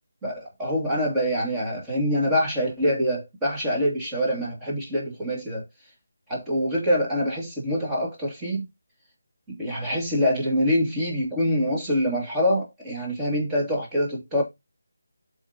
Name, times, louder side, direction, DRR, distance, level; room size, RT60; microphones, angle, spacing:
voice 1, 0.2-5.6 6.3-8.7 9.5-14.4, equal, 10° right, 2.6 m, -25 dB
12.0 x 4.1 x 2.9 m
figure-of-eight pair, 165°, 0 cm